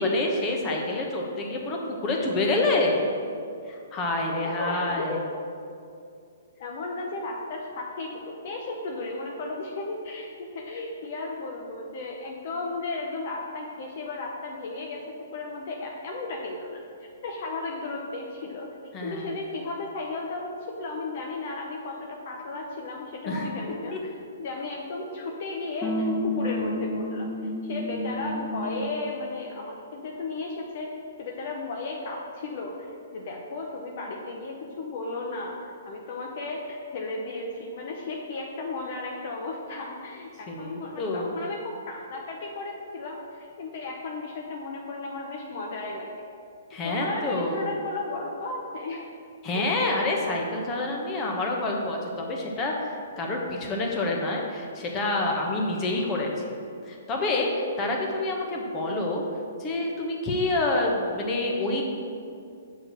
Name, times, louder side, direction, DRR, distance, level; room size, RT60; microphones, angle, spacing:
voice 1, 0.0-3.0 3.7-5.2 18.9-19.3 23.2-23.5 23.9-24.0 40.5-41.4 46.7-47.6 49.4-56.4 56.8-57.5 57.8-59.2 59.6-61.8, left 2 dB, 25° left, 0 dB, 1.3 m, -27 dB
voice 2, 4.4-5.2 6.6-16.8 17.2-18.7 19.0-24.1 24.4-27.3 27.6-30.9 31.2-35.6 35.8-46.2 46.8-49.1 49.5-50.1, left 3 dB, 50° left, 0 dB, 0.9 m, -34 dB
sound 1, 25.8-29.0, left 1 dB, 5° left, 0.8 m, -30 dB
6.4 x 4.7 x 6.4 m, 2.4 s
hypercardioid pair, 130°, 0 cm